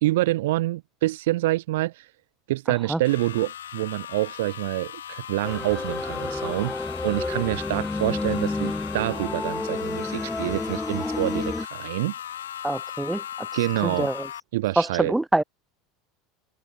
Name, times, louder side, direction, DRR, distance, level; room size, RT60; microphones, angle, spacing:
voice 1, 0.0-2.1 2.5-6.8 7.0-12.1 13.5-14.1 14.5-15.2, right 17 dB, 75° right, 2.3 m, -26 dB
sound 1, 3.0-14.4, left 10 dB, 85° left, 7.5 m, -38 dB
sound 2, 5.4-11.6, left 2 dB, 10° left, 2.3 m, -30 dB
voice 2, 12.6-13.2 13.8-14.3 14.8-15.4, right 2 dB, 10° right, 0.5 m, -24 dB
hypercardioid pair, 80°, 0 cm